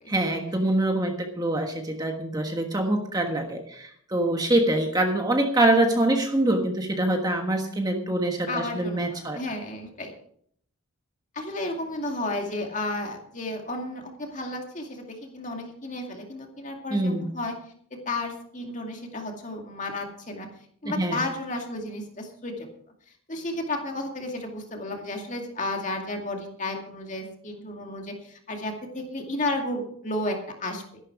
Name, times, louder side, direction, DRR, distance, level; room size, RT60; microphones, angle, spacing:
voice 1, 0.1-9.4 16.9-17.3 20.8-21.2, right 1 dB, 15° right, 3 dB, 1.3 m, -24 dB
voice 2, 8.5-10.1 11.3-17.5 17.9-20.5 20.8-22.7 23.3-30.8, left 2 dB, 35° left, 2 dB, 2.3 m, -33 dB
13.5 x 11.5 x 4.7 m, 0.63 s
head